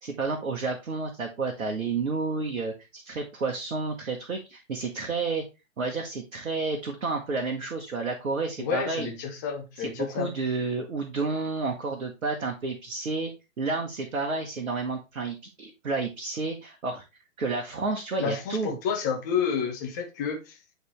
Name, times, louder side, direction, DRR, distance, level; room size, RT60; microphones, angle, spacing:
voice 1, 0.0-5.4 5.8-9.1 9.8-13.3 13.6-17.0 17.4-18.8, right 3 dB, 65° right, 1.3 m, -30 dB
voice 2, 8.6-10.3 18.2-20.6, left 7 dB, 15° left, 0.5 m, -30 dB
9.4 x 3.5 x 3.2 m
figure-of-eight pair, 125°, 41 cm